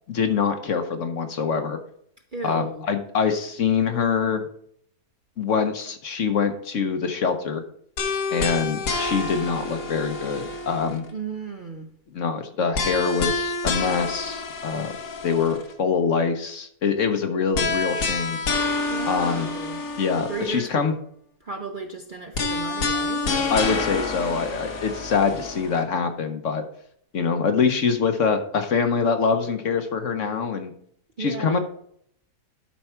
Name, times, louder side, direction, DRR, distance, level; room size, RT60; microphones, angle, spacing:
voice 1, 0.1-1.8 2.4-4.4 5.4-7.6 8.3-11.0 12.1-14.9 15.2-18.4 19.1-19.5 20.0-20.9 23.5-26.6 27.1-30.7 31.2-31.6, left 5 dB, 55° left, 7 dB, 1.1 m, -24 dB
voice 2, 2.3-2.9 11.1-11.9 18.9-19.8 20.3-20.8 21.4-23.5 31.2-31.6, right 3 dB, 45° right, 3 dB, 0.7 m, -34 dB
sound 1, 8.0-11.1 12.7-15.7 17.5-20.7 22.3-25.8, left 3 dB, 80° left, 1.9 m, -28 dB
11.5 x 4.7 x 4.4 m, 0.66 s
omnidirectional pair, 1.7 m